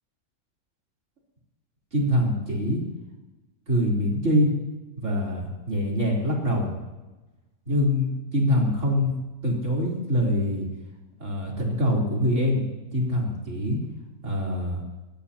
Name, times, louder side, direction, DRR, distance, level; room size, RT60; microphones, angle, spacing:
voice 1, 1.9-2.8 3.7-4.5 5.0-6.7 7.7-9.1 9.4-10.7 11.2-12.6 12.9-13.8 14.2-14.8, equal, 55° right, -3 dB, 4.2 m, -24 dB
22.0 x 16.0 x 2.9 m, 1.1 s
omnidirectional pair, 1.5 m